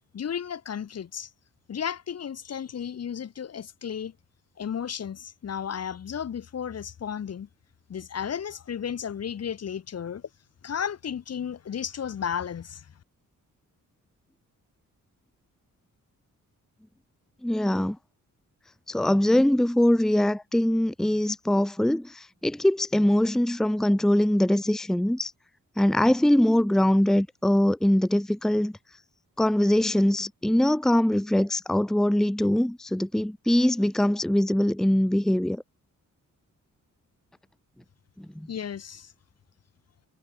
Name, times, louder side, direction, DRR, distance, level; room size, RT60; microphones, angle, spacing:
voice 1, 0.1-1.3 1.7-4.1 4.6-7.5 7.9-10.2 10.6-12.9 38.5-39.1, left 8 dB, 50° left, 1.1 m, -33 dB
voice 2, 17.4-18.0 18.9-25.3 25.8-28.7 29.4-35.6 38.2-38.5, left 1 dB, ahead, 0.8 m, -22 dB
cardioid pair, 110°, 32 cm